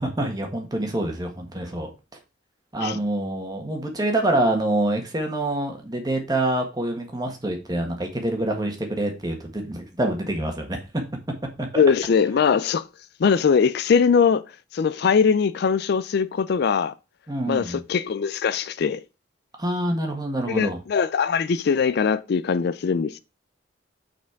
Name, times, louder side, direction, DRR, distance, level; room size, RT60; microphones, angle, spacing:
voice 1, 0.0-1.9 2.7-10.8 11.6-11.7 17.3-17.8 19.6-20.8, right 1 dB, 20° right, 1.5 m, -26 dB
voice 2, 11.8-12.8 13.2-14.4 14.7-16.9 17.5-19.0 20.5-23.2, left 6 dB, 55° left, 0.4 m, -21 dB
5.9 x 4.4 x 4.6 m
head